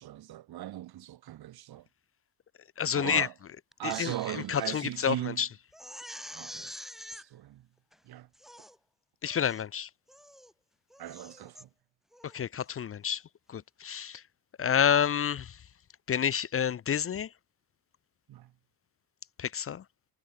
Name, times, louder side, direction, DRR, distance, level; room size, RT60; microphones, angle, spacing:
voice 1, 0.0-1.9 2.9-3.3 3.8-5.5 6.3-6.7 7.1-7.7 8.1-8.3 11.0-11.7 18.3-18.5, right 13 dB, 50° right, 3.4 m, -38 dB
voice 2, 2.8-3.3 3.8-5.5 9.2-9.9 12.2-13.2 13.5-14.2 14.6-15.6 16.1-17.3 19.4-19.8, left 8 dB, 30° left, 1.0 m, -29 dB
Crying sobbing, 3.7-4.8 5.2-5.3 5.7-7.2 7.9-8.0 8.3-8.8 9.3-9.7 10.1-10.5 10.9-11.6 12.1-12.4, equal, ahead, 5.8 m, -46 dB
cardioid pair, 160°, 47 cm